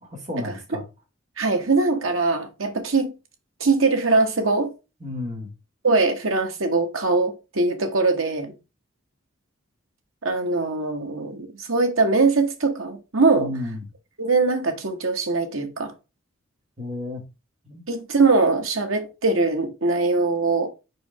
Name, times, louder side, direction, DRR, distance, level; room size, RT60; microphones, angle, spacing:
voice 1, 0.0-0.8 5.0-5.5 13.3-13.9 16.8-17.2 17.6-17.8, left 2 dB, 35° right, 2.2 m, -32 dB
voice 2, 1.4-3.1 3.6-4.7 5.8-8.5 10.2-13.5 14.2-15.9 17.9-20.7, right 3 dB, 80° right, 1.4 m, -22 dB
4.9 x 4.7 x 4.8 m
head